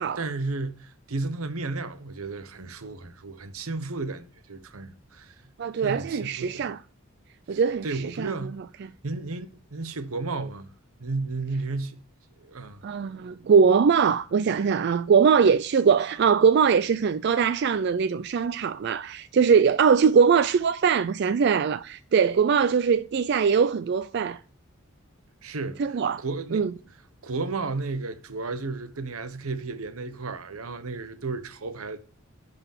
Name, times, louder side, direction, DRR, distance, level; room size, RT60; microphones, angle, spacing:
voice 1, 0.2-5.3 5.8-6.7 7.5-8.6 9.0-10.7 11.0-12.0 12.4-12.8 25.4-26.7 27.2-32.0, right 3 dB, 80° right, 1.0 m, -33 dB
voice 2, 5.6-6.8 7.5-8.3 8.8-8.9 12.8-24.4 25.8-26.2 26.5-26.7, right 6 dB, 50° right, 0.3 m, -21 dB
11.0 x 4.0 x 7.2 m
head